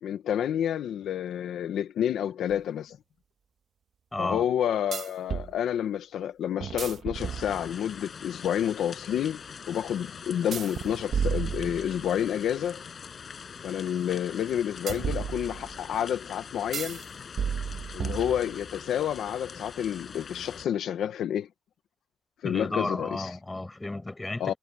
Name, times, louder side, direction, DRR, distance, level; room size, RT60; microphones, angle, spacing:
voice 1, 0.0-3.0 4.2-9.4 9.7-12.8 13.6-17.0 17.9-21.5 22.4-23.3 24.4-24.5, left 10 dB, 75° left, 1.2 m, -29 dB
sound 1, 2.5-2.6 4.9-5.5 6.6-7.9 10.5-12.2 14.9-15.9 16.7-17.0 17.4-18.7, right 7 dB, 45° right, 1.7 m, -33 dB
voice 2, 4.1-4.4 22.4-24.6, left 2 dB, 10° left, 6.2 m, -33 dB
sound 2, 7.1-20.7, left 6 dB, 40° left, 6.6 m, -43 dB
cardioid pair, 160°, 0 cm